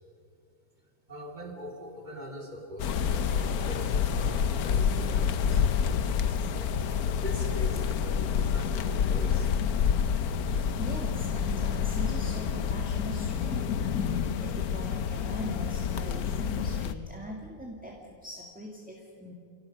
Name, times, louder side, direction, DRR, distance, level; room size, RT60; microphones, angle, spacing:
voice 1, 1.1-5.7 6.3-6.4 7.2-9.5, right 1 dB, 30° right, 1 dB, 3.1 m, -42 dB
sound 1, 2.8-16.9, left 7 dB, 75° left, 1.3 m, -28 dB
voice 2, 10.6-19.3, equal, 5° right, -1 dB, 2.1 m, -41 dB
28.0 x 17.5 x 5.3 m, 2.6 s
omnidirectional pair, 1.6 m